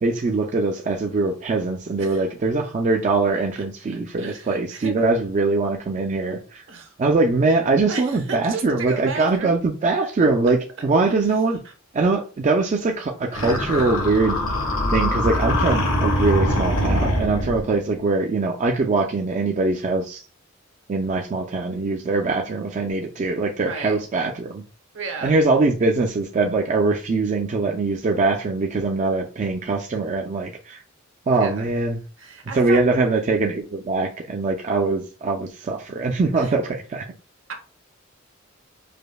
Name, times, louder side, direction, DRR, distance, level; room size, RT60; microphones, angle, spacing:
voice 1, 0.0-6.6 7.0-11.6 11.9-14.4 14.9-20.2 20.9-24.6 25.2-30.8 31.3-32.0 32.5-37.1, right 3 dB, 35° right, 0.4 m, -22 dB
voice 2, 3.6-5.1 6.4-6.9 7.9-9.5 23.6-24.0 24.9-25.3 31.3-31.7 32.2-32.8 36.4-36.5 37.5-37.6, right 4 dB, 65° right, 0.9 m, -34 dB
sound 1, 13.3-17.7, left 1 dB, 90° left, 1.4 m, -22 dB
5.0 x 2.1 x 2.2 m
head